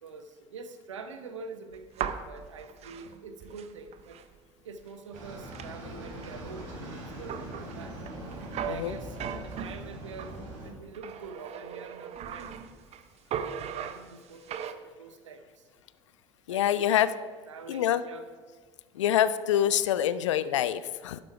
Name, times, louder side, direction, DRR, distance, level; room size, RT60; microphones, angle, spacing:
voice 1, 0.0-4.2 4.6-8.0 8.6-10.3 10.6-12.5 13.3-15.6 16.5-18.3, right 4 dB, 80° right, 9 dB, 0.8 m, -45 dB
sound 1, 1.7-4.4 4.8-4.9 5.2-10.4 10.9-13.0 13.3-14.7, right 8 dB, 45° right, 0.7 m, -39 dB
sound 2, 5.1-10.7, right 1 dB, 65° right, 3.6 m, -42 dB
voice 2, 16.5-17.1 17.7-18.0 18.9-21.2, left 11 dB, 75° left, 15 dB, 0.4 m, -26 dB
11.5 x 7.6 x 4.7 m, 1.5 s
figure-of-eight pair, 65°, 16 cm